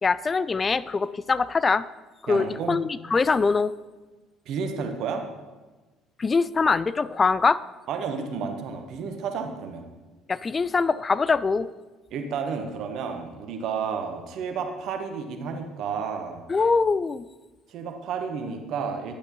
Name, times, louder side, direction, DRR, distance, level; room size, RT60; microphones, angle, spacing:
voice 1, 0.0-1.9 2.2-3.7 6.2-7.6 10.3-11.7 16.5-17.3, left 4 dB, 30° left, 17 dB, 0.3 m, -23 dB
voice 2, 2.3-2.8 4.5-5.2 7.9-9.8 12.1-16.4 17.7-19.1, right 6 dB, 60° right, 5 dB, 1.0 m, -31 dB
10.0 x 8.5 x 3.1 m, 1.2 s
hypercardioid pair, 60°, 0 cm